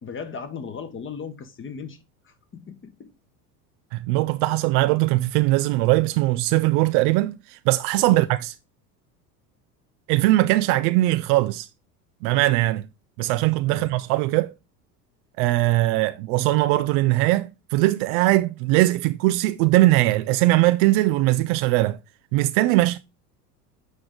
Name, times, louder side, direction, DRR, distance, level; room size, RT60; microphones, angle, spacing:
voice 1, 0.0-3.1 8.1-8.3 13.6-13.9, left 6 dB, 25° left, 1.2 m, -37 dB
voice 2, 3.9-8.5 10.1-11.7 12.2-12.9 13.2-14.5 15.4-22.0 22.3-23.0, right 18 dB, 45° right, 0.5 m, -20 dB
8.0 x 4.9 x 3.7 m
hypercardioid pair, 80°, 49 cm